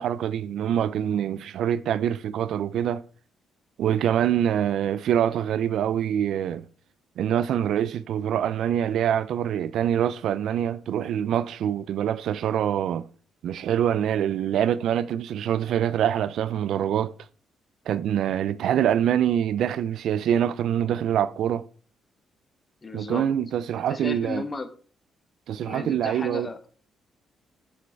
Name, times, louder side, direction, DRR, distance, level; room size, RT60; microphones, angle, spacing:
voice 1, 0.0-3.0 3.8-6.6 7.2-13.0 13.4-17.1 17.9-21.6 22.9-24.4 25.5-26.5, right 10 dB, 75° right, 0.4 m, -25 dB
voice 2, 22.8-23.3 23.9-24.7 25.6-26.7, left 3 dB, 30° left, 1.3 m, -34 dB
7.6 x 6.6 x 4.5 m
cardioid pair, 90°, 0 cm